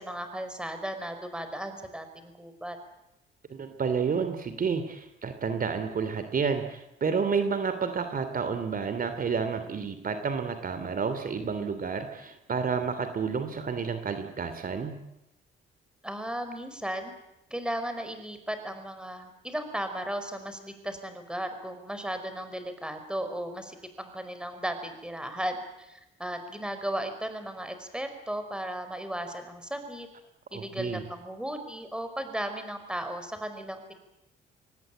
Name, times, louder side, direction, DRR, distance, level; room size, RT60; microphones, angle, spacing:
voice 1, 0.0-2.8 16.0-17.1 17.5-30.1 30.5-33.9, right 1 dB, 5° right, 8 dB, 5.2 m, -35 dB
voice 2, 3.5-15.0 30.5-31.0, right 5 dB, 45° right, 9 dB, 2.9 m, -30 dB
24.0 x 19.5 x 9.1 m, 0.87 s
cardioid pair, 90°, 20 cm